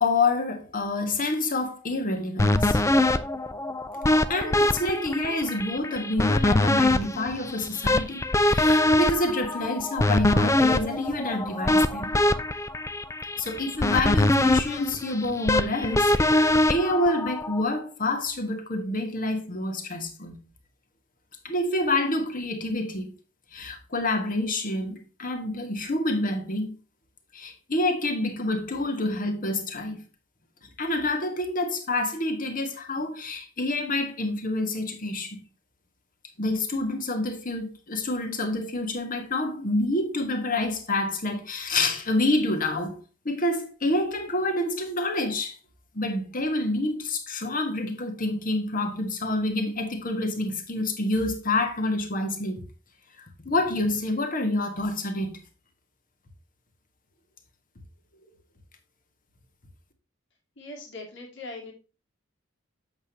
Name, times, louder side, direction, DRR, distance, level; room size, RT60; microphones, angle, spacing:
voice 1, 0.0-2.8 4.3-12.1 13.4-20.4 21.4-23.1 23.5-26.8 27.3-30.0 30.8-35.4 36.4-43.0 43.3-45.6 45.9-52.6 53.2-55.4, left 2 dB, 45° left, 1.6 m, -28 dB
sound 1, 2.4-17.6, left 1 dB, 15° left, 0.4 m, -23 dB
voice 2, 60.6-61.7, left 2 dB, 60° left, 2.4 m, -40 dB
7.9 x 7.1 x 2.9 m
head